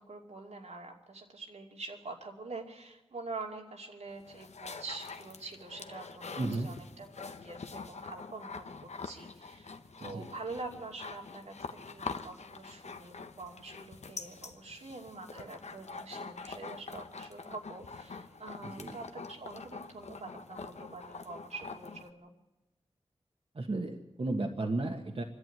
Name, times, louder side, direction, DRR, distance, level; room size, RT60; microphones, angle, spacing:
voice 1, 0.0-22.3, right 3 dB, 90° right, 0 dB, 2.6 m, -45 dB
sound 1, 4.1-22.1, left 4 dB, 85° left, 1.0 m, -45 dB
voice 2, 6.4-6.7 10.0-10.3 18.6-19.0 23.5-25.2, right 2 dB, 60° right, 3 dB, 1.5 m, -34 dB
25.0 x 11.0 x 9.2 m, 1.0 s
wide cardioid pair, 75°, 11 cm